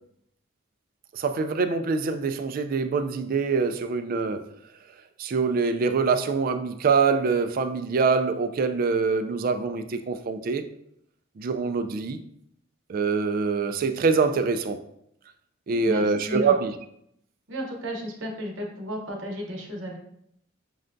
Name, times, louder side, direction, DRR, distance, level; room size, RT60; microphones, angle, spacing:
voice 1, 1.1-4.5 5.2-10.7 11.4-12.2 12.9-14.8 15.7-16.7, right 4 dB, 45° right, 8 dB, 0.3 m, -24 dB
voice 2, 15.7-16.5 17.5-20.0, equal, 70° right, 0 dB, 0.9 m, -33 dB
6.2 x 2.2 x 2.5 m, 0.73 s
head